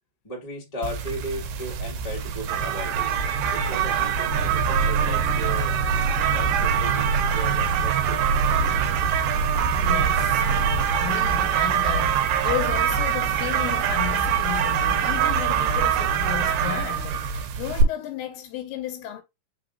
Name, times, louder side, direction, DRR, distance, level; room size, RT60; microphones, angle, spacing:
voice 1, 0.2-3.1 3.5-5.8 6.2-8.2, right 1 dB, 30° left, 0.6 m, -36 dB
sound 1, 0.8-17.8, right 8 dB, 80° right, 2.2 m, -24 dB
sound 2, 4.3-10.9, right 3 dB, 60° right, 1.8 m, -26 dB
voice 2, 9.6-10.6 11.0-19.2, left 12 dB, 80° left, 2.3 m, -33 dB
5.2 x 3.6 x 2.5 m
omnidirectional pair, 4.2 m